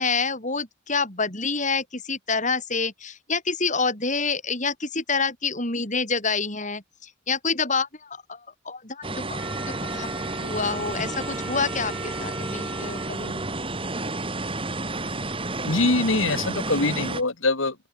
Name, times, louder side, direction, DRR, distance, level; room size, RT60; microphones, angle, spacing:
voice 1, 0.0-13.5, left 4 dB, 35° left, 7.3 m, -28 dB
sound 1, 9.0-17.2, right 2 dB, 25° right, 4.0 m, -31 dB
Wind instrument woodwind instrument, 9.4-14.2, equal, 5° right, 5.4 m, -41 dB
voice 2, 15.6-17.8, left 3 dB, 70° left, 2.3 m, -23 dB
open air
head